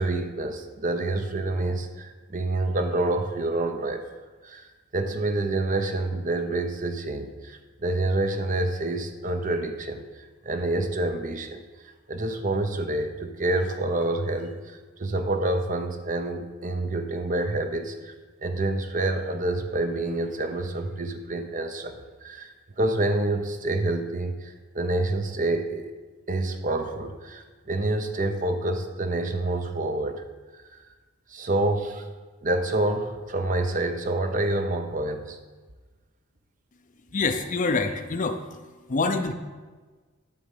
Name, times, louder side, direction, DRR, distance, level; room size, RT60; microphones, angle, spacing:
voice 1, 0.0-4.1 4.4-18.1 18.4-25.9 26.3-30.2 30.5-30.6 31.3-32.1 32.4-35.4, right 2 dB, 40° right, 6 dB, 0.8 m, -28 dB
voice 2, 37.1-38.4 38.9-39.3, left 3 dB, 40° left, 7 dB, 0.6 m, -25 dB
11.5 x 3.9 x 7.3 m, 1.3 s
head